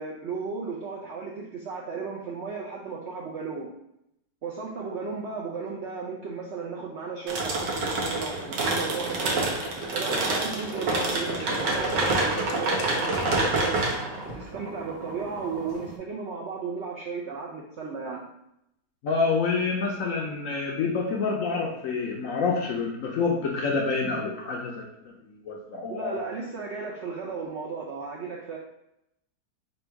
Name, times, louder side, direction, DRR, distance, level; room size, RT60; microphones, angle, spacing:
voice 1, 0.0-3.7 4.4-9.5 9.9-13.8 14.2-18.2 25.9-28.6, right 5 dB, 75° right, -2 dB, 0.6 m, -35 dB
sound 1, 7.3-15.9, right 2 dB, 90° right, 1.5 m, -28 dB
sound 2, 9.1-10.1 10.5-13.9 14.3-14.5, left 3 dB, 90° left, 1.4 m, -41 dB
voice 2, 19.0-24.9 25.3-26.2, left 4 dB, 65° left, -1 dB, 0.8 m, -27 dB
4.3 x 2.3 x 4.4 m, 0.81 s
omnidirectional pair, 1.8 m